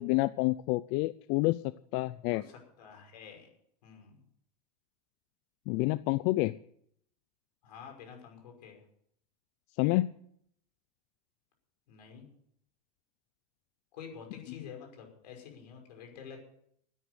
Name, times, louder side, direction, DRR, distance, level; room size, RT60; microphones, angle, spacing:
voice 1, 0.0-1.6 1.9-2.4 5.7-6.6 9.8-10.1, left 20 dB, 50° left, 16 dB, 0.5 m, -28 dB
voice 2, 2.8-3.5 3.8-4.2 7.6-8.8 11.9-12.3 13.9-16.4, left 7 dB, 75° left, 3 dB, 5.8 m, -48 dB
13.0 x 10.0 x 8.0 m, 0.70 s
hypercardioid pair, 110°, 21 cm